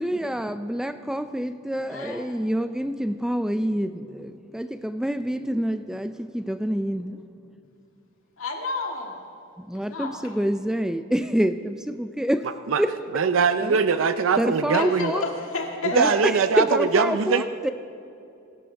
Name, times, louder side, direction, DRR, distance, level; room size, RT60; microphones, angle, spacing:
voice 1, 0.0-7.2 9.6-13.0 13.6-13.8 14.4-15.3 15.9-17.7, equal, 5° right, 0.3 m, -27 dB
voice 2, 1.9-2.3 8.4-9.1 9.7-10.1 14.7-16.0, left 3 dB, 80° left, 2.1 m, -31 dB
voice 3, 13.1-15.1 15.9-17.4, right 5 dB, 70° right, 0.5 m, -21 dB
23.0 x 11.5 x 3.4 m
head